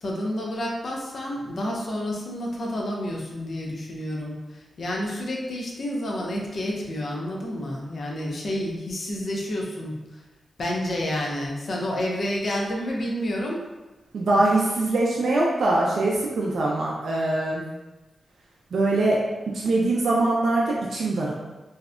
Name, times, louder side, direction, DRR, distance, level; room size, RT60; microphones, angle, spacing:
voice 1, 0.0-10.0 10.6-13.7, left 1 dB, 60° left, -2 dB, 0.5 m, -29 dB
voice 2, 14.1-17.6 18.7-19.2 19.5-21.3, right 2 dB, 75° right, -3 dB, 0.3 m, -22 dB
2.6 x 2.1 x 2.4 m, 1.1 s
wide cardioid pair, 120°, 0 cm